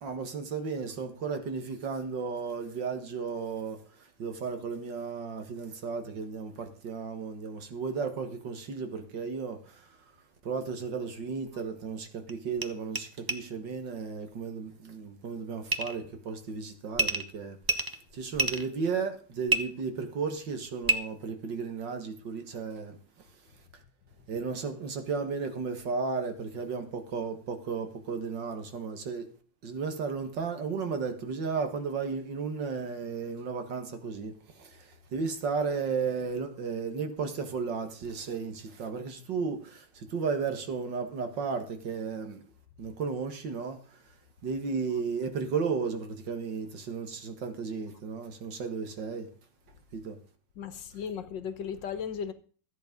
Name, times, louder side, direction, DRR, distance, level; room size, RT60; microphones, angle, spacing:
voice 1, 0.0-10.0 10.4-17.6 18.1-23.0 24.3-29.3 29.6-42.4 42.8-44.0 44.4-49.3 49.9-50.2, right 5 dB, 70° right, 2.3 m, -34 dB
sound 1, 11.5-11.6 12.3-12.4 12.6-12.7 12.9-13.0 13.3-13.4 15.7-16.0 16.9-17.2 17.6-18.7 19.5-19.6 20.8-21.0, right 3 dB, 25° right, 0.5 m, -27 dB
voice 2, 50.6-52.3, left 7 dB, 75° left, 1.8 m, -36 dB
13.5 x 9.1 x 5.3 m
omnidirectional pair, 2.0 m